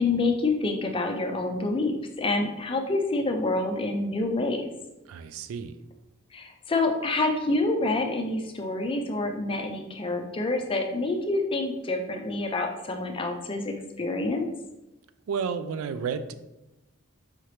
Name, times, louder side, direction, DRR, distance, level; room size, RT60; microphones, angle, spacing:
voice 1, 0.0-4.7 6.3-14.5, left 2 dB, 25° left, 4 dB, 0.4 m, -27 dB
voice 2, 5.1-5.7 15.3-16.3, right 6 dB, 85° right, 12 dB, 0.3 m, -31 dB
4.9 x 2.9 x 3.2 m, 0.96 s
head